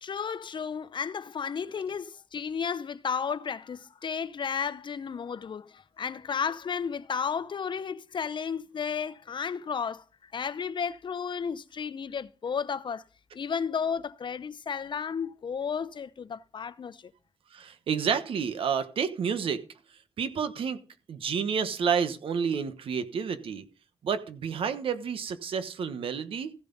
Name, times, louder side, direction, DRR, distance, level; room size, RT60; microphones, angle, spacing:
voice 1, 0.0-13.0 13.3-17.1, left 6 dB, 60° left, 0.7 m, -33 dB
voice 2, 17.5-19.6 20.2-20.8 21.1-23.6 24.0-26.5, right 6 dB, 80° right, 1.2 m, -30 dB
15.0 x 6.9 x 4.0 m
cardioid pair, 55°, 9 cm